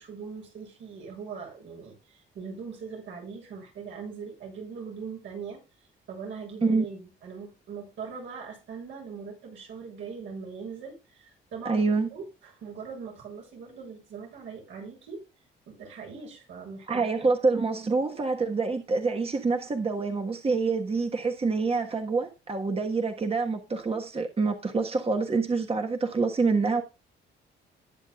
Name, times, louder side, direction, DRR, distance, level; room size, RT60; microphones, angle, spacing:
voice 1, 0.0-5.6 6.1-11.8 12.1-15.2 15.7-17.1, right 5 dB, 80° right, 7.7 m, -41 dB
voice 2, 11.6-12.1 16.9-26.8, right 4 dB, 30° right, 1.4 m, -26 dB
19.5 x 7.4 x 2.4 m
cardioid pair, 90°, 20 cm